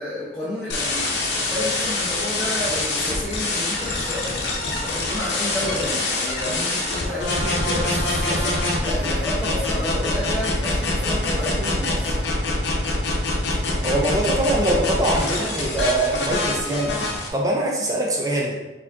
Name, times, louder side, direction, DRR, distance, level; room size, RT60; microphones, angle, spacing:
voice 1, 0.0-12.0, left 1 dB, 5° left, -11 dB, 1.0 m, -31 dB
sound 1, 0.7-17.3, left 2 dB, 70° left, 0.8 m, -25 dB
voice 2, 13.6-18.6, right 1 dB, 20° right, -2 dB, 0.5 m, -23 dB
4.9 x 3.6 x 2.8 m, 1.1 s
head